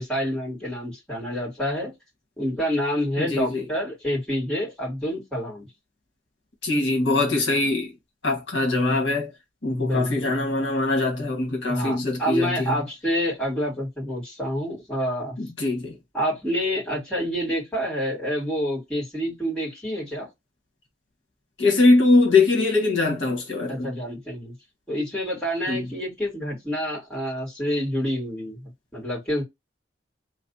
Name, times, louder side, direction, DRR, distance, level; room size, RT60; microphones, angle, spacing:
voice 1, 0.0-1.9 2.4-5.7 9.8-10.3 11.7-15.4 16.1-20.3 23.7-24.5 24.9-29.4, equal, 5° left, 2.6 m, -28 dB
voice 2, 3.2-3.6 6.6-7.9 8.2-9.3 9.6-12.7 15.4-16.0 21.6-23.9 25.7-25.8, left 3 dB, 70° left, 1.6 m, -22 dB
3.3 x 3.3 x 2.7 m
head